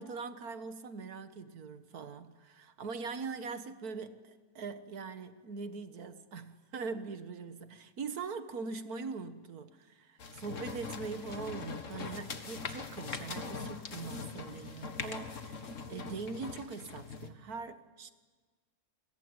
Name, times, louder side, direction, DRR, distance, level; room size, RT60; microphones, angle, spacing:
voice 1, 0.0-18.1, right 4 dB, 75° right, 1.9 m, -42 dB
sound 1, 10.2-17.3, left 4 dB, 55° left, 1.9 m, -42 dB
28.5 x 21.5 x 9.7 m
omnidirectional pair, 1.6 m